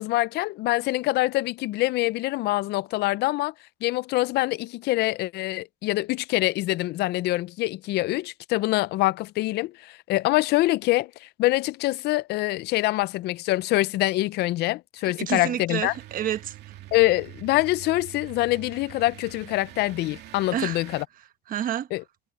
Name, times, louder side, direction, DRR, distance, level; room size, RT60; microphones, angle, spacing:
voice 1, 0.0-3.5 3.8-15.9 16.9-21.0 21.9-22.0, left 18 dB, 75° left, 0.5 m, -25 dB
voice 2, 15.2-16.8 20.5-20.8 21.5-21.9, right 10 dB, 55° right, 1.2 m, -29 dB
sound 1, 15.8-21.1, right 14 dB, 80° right, 2.5 m, -45 dB
cardioid pair, 110°, 17 cm